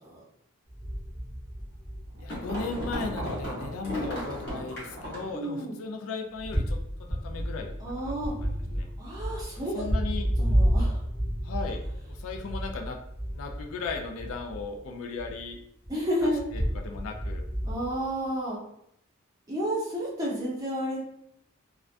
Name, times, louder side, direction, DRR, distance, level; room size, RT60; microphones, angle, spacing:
sound 1, 0.7-2.5 2.8-3.5 3.8-4.0 6.3-14.9 15.2-18.1, equal, 15° left, 0.7 m, -31 dB
sound 2, 1.6-5.4, equal, 45° left, 0.9 m, -35 dB
voice 1, 2.2-6.8 7.2-8.1 8.4-8.9 9.7-10.3 11.4-13.0 13.3-15.6 16.2-17.4, left 4 dB, 70° left, 3 dB, 0.3 m, -37 dB
voice 2, 3.9-4.2 5.3-5.8 7.8-8.3 9.0-9.7 10.4-11.0 15.9-16.4 17.6-18.6 19.5-21.0, equal, 15° right, -5 dB, 0.6 m, -31 dB
2.3 x 2.1 x 2.4 m, 0.75 s
head